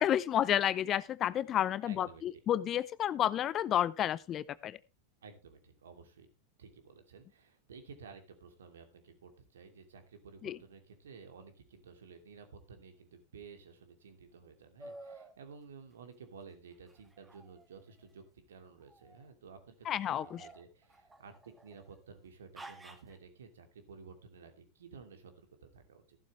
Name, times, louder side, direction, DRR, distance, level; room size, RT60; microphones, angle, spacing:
voice 1, 0.0-4.8 10.4-10.6 19.9-20.5, left 11 dB, 35° left, 0.7 m, -31 dB
voice 2, 1.8-2.2 5.2-6.3 6.6-26.2, right 5 dB, 75° right, 2.7 m, -54 dB
sound 1, 14.8-15.4 16.9-18.1 18.8-19.3 19.8-21.9 22.5-23.2, right 2 dB, 10° right, 1.8 m, -52 dB
14.5 x 12.0 x 3.2 m
hypercardioid pair, 90°, 0 cm